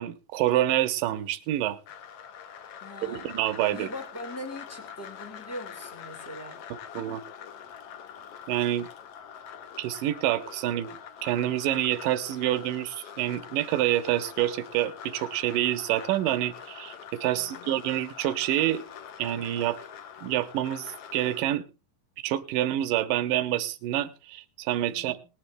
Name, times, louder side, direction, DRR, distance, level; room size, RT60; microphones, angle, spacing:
voice 1, 0.0-1.8 3.0-3.9 7.0-7.2 8.5-8.9 9.8-10.9 11.2-18.8 19.2-19.8 20.2-21.6 22.2-25.2, right 13 dB, 85° right, 9 dB, 2.5 m, -27 dB
sound 1, 1.9-21.4, left 8 dB, 70° left, 1.4 m, -44 dB
voice 2, 2.8-3.3 3.7-6.6 7.0-7.2 17.3-17.7 24.9-25.2, left 1 dB, 25° left, 4 dB, 0.3 m, -42 dB
19.0 x 10.0 x 3.3 m, 0.30 s
omnidirectional pair, 3.9 m